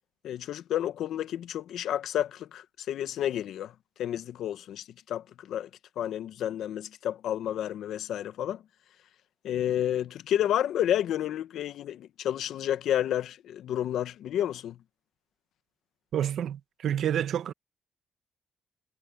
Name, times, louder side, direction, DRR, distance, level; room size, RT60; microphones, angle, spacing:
voice 1, 0.2-3.7 4.0-5.7 6.0-8.6 9.4-14.8, left 11 dB, 75° left, 1.0 m, -30 dB
voice 2, 16.1-17.5, right 10 dB, 70° right, 1.3 m, -29 dB
cardioid pair, 90°, 0 cm